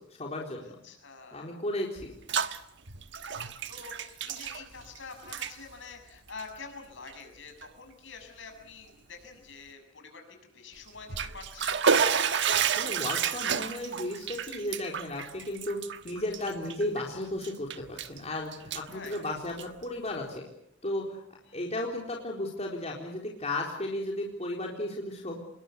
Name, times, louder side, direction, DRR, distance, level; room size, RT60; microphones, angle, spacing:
voice 1, 0.1-0.8 1.3-2.1 12.7-20.4 20.8-21.2 21.5-25.4, left 1 dB, 35° left, -1 dB, 4.0 m, -34 dB
voice 2, 0.8-1.6 3.3-10.2 10.5-11.8 18.9-19.4 21.5-21.7, left 4 dB, 70° left, 5 dB, 6.8 m, -47 dB
Bathtub (filling or washing), 2.0-2.6 2.9-5.0 5.2-5.5 6.3-6.4 7.1-7.2 7.6-7.7 10.9-17.0 17.4-18.2 18.5-19.8, right 7 dB, 65° right, 1.3 m, -30 dB
27.0 x 21.5 x 8.2 m, 0.77 s
head